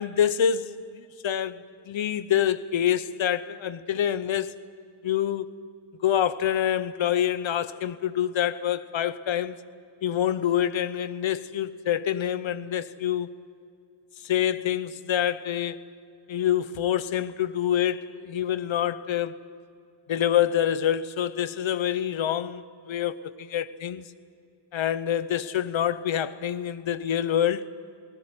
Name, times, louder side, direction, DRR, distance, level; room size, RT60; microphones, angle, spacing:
voice 1, 0.0-1.6 1.9-4.6 5.0-5.5 6.0-9.6 10.0-13.3 14.2-15.8 16.3-19.3 20.1-24.0 24.7-27.7, left 10 dB, 75° left, 0.9 m, -26 dB
19.5 x 17.0 x 9.7 m
cardioid pair, 45°, 46 cm